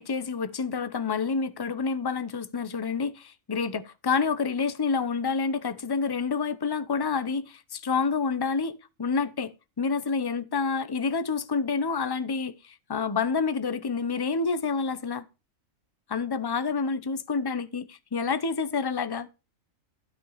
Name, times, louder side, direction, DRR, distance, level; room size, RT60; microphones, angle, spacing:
voice 1, 0.0-15.2 16.1-19.3, left 5 dB, 20° left, 0.7 m, -28 dB
13.0 x 5.5 x 6.5 m
omnidirectional pair, 1.4 m